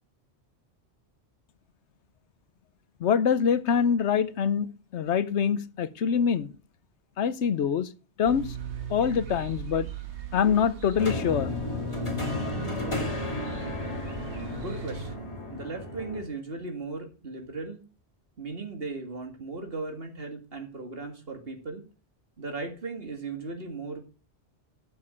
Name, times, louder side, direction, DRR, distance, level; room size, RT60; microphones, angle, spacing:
voice 1, 3.0-4.7 4.9-6.5 7.2-7.9 8.2-8.5 8.9-9.9 10.3-11.5, left 7 dB, 90° left, 1.1 m, -24 dB
sound 1, 8.3-15.2, right 8 dB, 80° right, 1.5 m, -40 dB
sound 2, 11.0-16.2, left 2 dB, 25° left, 2.7 m, -33 dB
voice 2, 14.5-17.8 18.4-21.8 22.4-24.0, right 3 dB, 60° right, 2.3 m, -37 dB
12.5 x 6.8 x 5.0 m
omnidirectional pair, 1.1 m